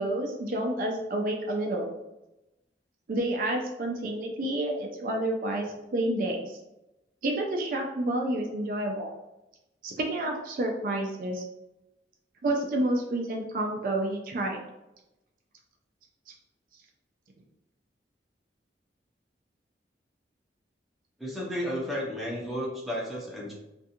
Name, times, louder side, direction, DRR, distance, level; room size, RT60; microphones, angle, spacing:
voice 1, 0.0-1.9 3.1-6.6 7.2-9.1 9.8-11.4 12.4-14.6, right 1 dB, 50° right, 1 dB, 0.4 m, -29 dB
voice 2, 21.2-23.5, equal, ahead, -5 dB, 0.6 m, -33 dB
2.5 x 2.3 x 2.7 m, 0.94 s
head